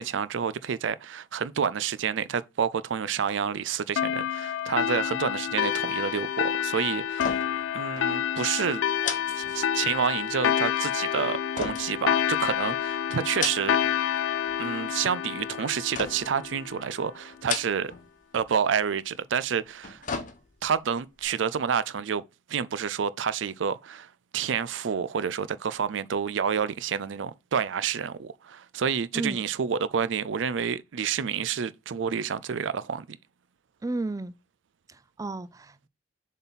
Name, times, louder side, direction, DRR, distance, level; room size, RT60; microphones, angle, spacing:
voice 1, 0.0-7.4 7.7-8.8 9.3-13.8 14.6-17.9 18.3-20.1 20.6-22.2 22.5-33.2, right 7 dB, 80° right, 0.4 m, -29 dB
sound 1, 4.0-17.0, left 9 dB, 85° left, 0.3 m, -28 dB
sound 2, 7.1-7.7 8.0-8.1 9.0-10.1 11.5-12.7 13.2-14.0 14.3-14.9 15.9-16.4 17.3-18.1 18.4-18.5 19.6-20.8 21.2-21.3, left 5 dB, 45° left, 1.0 m, -35 dB
voice 2, 33.8-34.3 34.9-35.9, right 2 dB, 20° right, 0.4 m, -33 dB
6.9 x 4.2 x 4.0 m
head